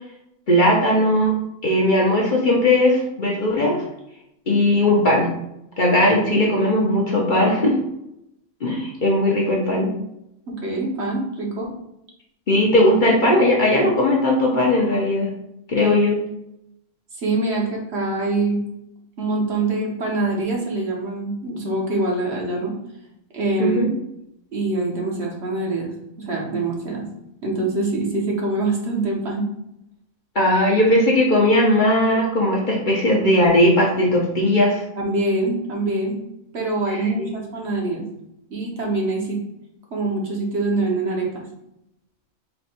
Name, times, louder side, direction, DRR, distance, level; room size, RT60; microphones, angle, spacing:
voice 1, 0.5-1.3 1.6-3.8 4.5-5.3 5.8-7.7 8.6-9.9 12.5-15.3 15.7-16.2 23.6-23.9 30.3-34.8 36.9-37.3, left 1 dB, 45° left, -3 dB, 0.8 m, -18 dB
voice 2, 10.5-11.7 15.8-16.0 17.1-18.6 19.2-22.7 23.3-23.8 24.5-25.9 26.2-27.0 27.4-29.5 35.0-36.2 36.5-38.0 38.5-39.4 39.9-41.4, right 2 dB, 55° right, -1 dB, 1.1 m, -24 dB
4.3 x 2.3 x 4.1 m, 0.82 s
omnidirectional pair, 1.4 m